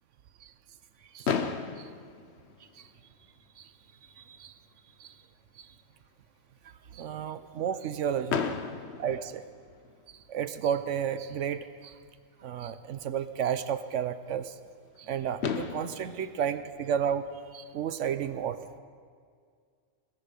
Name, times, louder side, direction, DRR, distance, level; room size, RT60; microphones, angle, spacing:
Fireworks, 1.2-3.3 4.1-4.2 4.4-4.6 4.9-5.0 8.3-10.1 11.8-11.9 15.0-15.1 15.4-17.7, left 6 dB, 60° left, 1.1 m, -35 dB
voice 1, 4.2-4.5 5.0-5.1 5.6-5.7 6.9-8.5 9.0-9.4 10.3-11.9 12.4-14.5 15.0-17.3 17.5-18.6, right 8 dB, 75° right, 12 dB, 1.0 m, -32 dB
20.0 x 13.0 x 5.2 m, 2.1 s
omnidirectional pair, 1.3 m